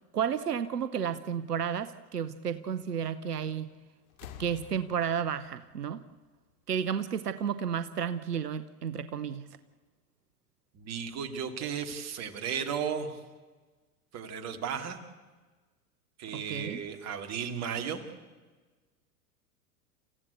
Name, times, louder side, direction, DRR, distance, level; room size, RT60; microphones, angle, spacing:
voice 1, 0.1-3.7 4.4-6.0 6.7-9.5 16.3-16.8, right 8 dB, 90° right, 12 dB, 1.0 m, -32 dB
sound 1, 3.5-3.8 4.1-6.8 8.0-8.1, left 9 dB, 65° left, 2.4 m, -51 dB
voice 2, 10.7-13.2 14.1-15.0 16.2-18.0, right 7 dB, 35° right, 6 dB, 2.5 m, -35 dB
28.5 x 15.0 x 8.3 m, 1.3 s
hypercardioid pair, 100°, 46 cm